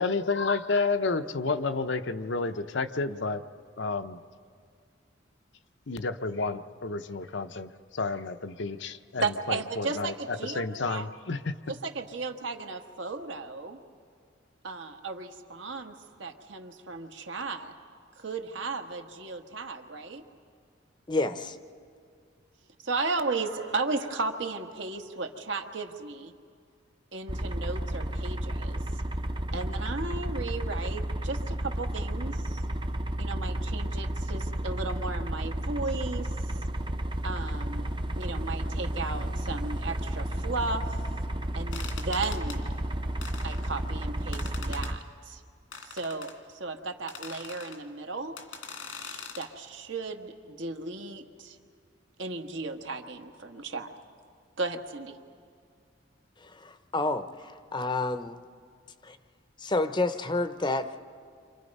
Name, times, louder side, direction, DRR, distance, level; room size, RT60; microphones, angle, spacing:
voice 1, 0.0-3.4 3.8-4.2 5.9-11.6, left 3 dB, 65° left, 9 dB, 0.8 m, -30 dB
voice 2, 9.2-11.1 11.7-13.8 14.6-17.7 18.2-20.2 22.8-26.3 27.1-29.0 29.5-32.6 33.2-36.3 37.2-37.9 38.1-41.1 41.5-42.7 43.4-45.4 45.8-48.3 49.0-51.6 52.2-53.9 54.6-55.2, right 3 dB, 75° right, 4 dB, 1.5 m, -35 dB
voice 3, 21.1-21.6 56.4-58.4 59.0-59.2 59.6-60.9, left 2 dB, 25° left, 10 dB, 0.7 m, -29 dB
sound 1, 27.3-45.0, right 1 dB, 25° right, 0.6 m, -32 dB
sound 2, 41.7-42.6 43.2-43.8 44.3-44.9 45.7-46.3 47.1-47.8 48.4-49.5, left 6 dB, 90° left, 2.4 m, -42 dB
29.5 x 26.5 x 5.4 m, 2.2 s
head